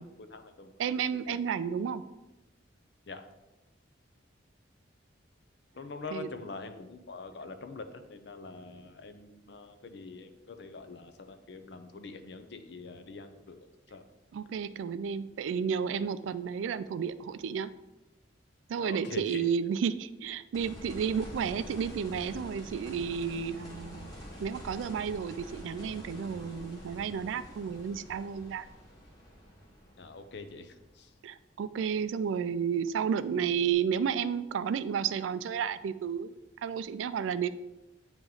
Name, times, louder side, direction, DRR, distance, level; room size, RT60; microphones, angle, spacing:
voice 1, 0.0-0.7 1.3-1.4 3.1-3.2 5.7-14.0 18.8-19.4 30.0-31.1, left 3 dB, 60° left, 8 dB, 0.5 m, -44 dB
voice 2, 0.8-2.0 6.1-6.3 14.3-17.7 18.7-24.1 24.4-28.7 31.2-36.3 36.6-37.5, right 7 dB, 80° right, 14 dB, 0.3 m, -32 dB
sound 1, 20.5-31.4 33.7-33.8, equal, 20° left, 1.3 m, -47 dB
8.7 x 3.0 x 3.8 m, 1.0 s
head